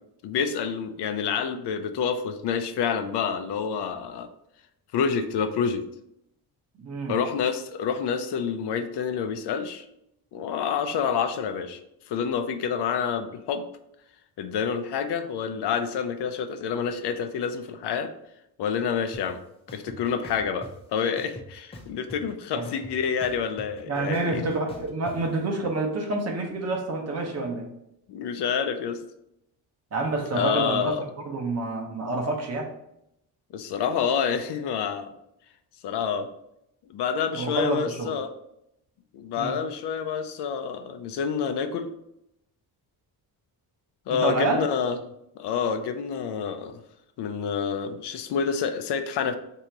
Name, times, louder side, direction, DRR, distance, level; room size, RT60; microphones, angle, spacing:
voice 1, 0.2-4.3 4.9-5.8 7.1-9.9 10.3-11.8 12.1-13.6 14.4-18.1 18.6-19.4 19.7-24.4 28.1-29.0 30.3-31.1 33.5-35.1 35.8-36.3 36.9-38.3 39.1-41.9 44.1-45.0 45.4-46.8 47.2-49.4, left 6 dB, 80° left, 8 dB, 0.6 m, -28 dB
voice 2, 6.8-7.2 22.5-22.7 23.9-27.7 29.9-30.9 31.2-32.7 37.3-38.1 39.4-39.6 44.1-44.6, right 2 dB, 40° right, 2 dB, 0.9 m, -28 dB
sound 1, 19.1-19.2 19.7-20.7 21.2-22.3 22.6-25.2, left 1 dB, 15° left, 0.6 m, -43 dB
3.8 x 2.8 x 4.5 m, 0.80 s
wide cardioid pair, 165°, 40 cm